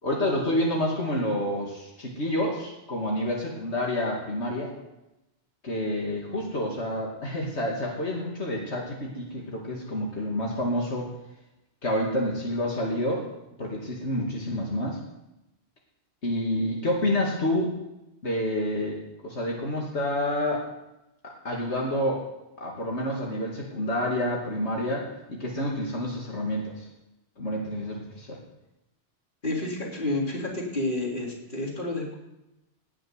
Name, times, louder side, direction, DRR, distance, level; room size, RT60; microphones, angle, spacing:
voice 1, 0.0-4.7 5.6-11.1 11.8-13.2 13.6-15.0 16.2-17.7 18.2-20.6 21.2-22.2 22.6-26.8 27.4-28.4, left 1 dB, 75° left, -2 dB, 2.8 m, -28 dB
voice 2, 29.4-32.1, left 2 dB, 45° left, -1 dB, 3.7 m, -30 dB
18.5 x 7.7 x 9.6 m, 0.93 s
omnidirectional pair, 1.2 m